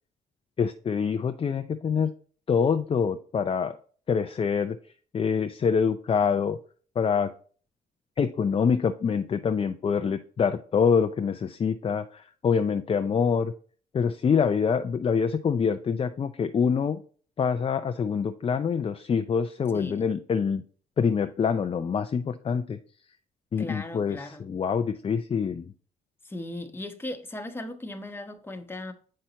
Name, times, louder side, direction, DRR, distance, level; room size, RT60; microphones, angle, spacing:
voice 1, 0.6-2.1 2.5-3.8 4.1-4.8 5.1-6.6 7.0-7.3 8.2-13.5 13.9-17.0 17.4-20.6 21.0-22.8 23.5-25.7, left 6 dB, 35° left, 0.5 m, -25 dB
voice 2, 19.7-20.1 23.6-24.4 26.2-28.9, left 1 dB, 15° left, 1.1 m, -37 dB
7.6 x 5.6 x 2.9 m
cardioid pair, 85°, 17 cm